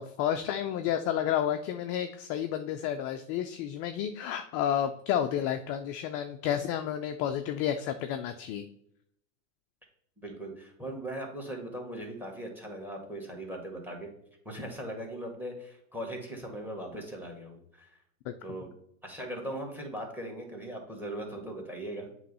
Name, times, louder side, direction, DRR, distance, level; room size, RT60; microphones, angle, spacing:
voice 1, 0.0-8.6 18.3-18.6, left 10 dB, 35° left, 7 dB, 0.4 m, -31 dB
voice 2, 10.2-14.1 14.5-17.9 18.4-18.7 19.0-22.1, right 1 dB, 5° right, 2 dB, 1.9 m, -39 dB
7.6 x 3.1 x 5.4 m, 0.74 s
hypercardioid pair, 115°, 45 cm